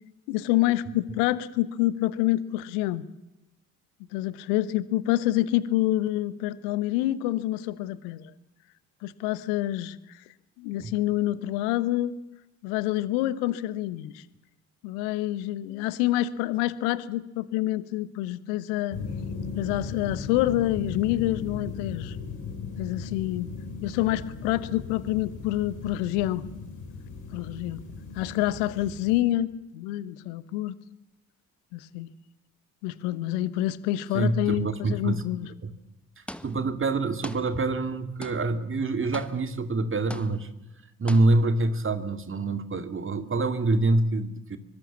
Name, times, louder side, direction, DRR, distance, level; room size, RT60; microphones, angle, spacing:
voice 1, 0.3-3.0 4.1-8.3 9.0-10.2 10.6-12.2 12.6-14.2 14.8-19.0 19.5-22.2 22.8-23.5 23.8-26.4 27.3-27.8 28.1-30.7 31.7-32.1 32.8-35.5, left 15 dB, 65° left, 17 dB, 1.2 m, -27 dB
sound 1, 18.9-29.2, left 5 dB, 45° left, 5.7 m, -37 dB
voice 2, 34.1-35.2 35.6-35.7 36.4-40.5 41.0-44.6, right 2 dB, 30° right, 9 dB, 2.3 m, -26 dB
sound 2, 36.3-36.9 37.2-37.9 38.2-38.7 39.1-39.7 40.1-40.6 41.1-41.7, left 1 dB, 5° left, 1.2 m, -43 dB
24.0 x 23.0 x 7.2 m, 0.93 s
figure-of-eight pair, 45°, 42 cm